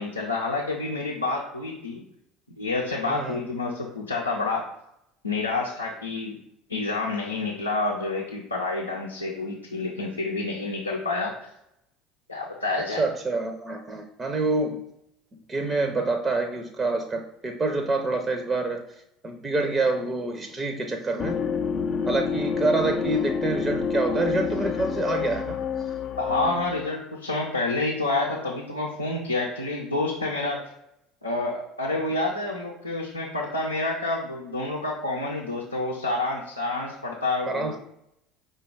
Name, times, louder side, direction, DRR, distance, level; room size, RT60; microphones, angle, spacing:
voice 1, 0.0-2.0 2.6-4.7 5.2-6.4 6.7-11.3 12.3-13.0 26.2-30.6 31.2-37.8, left 2 dB, 90° left, -3 dB, 0.6 m, -28 dB
voice 2, 3.1-3.4 13.0-14.8 15.5-18.8 19.2-21.4 22.1-25.6 37.5-37.8, right 3 dB, 25° right, 5 dB, 0.5 m, -27 dB
sound 1, 21.2-26.9, left 6 dB, 45° left, 0.4 m, -28 dB
5.0 x 2.3 x 4.6 m, 0.78 s
figure-of-eight pair, 65°, 0 cm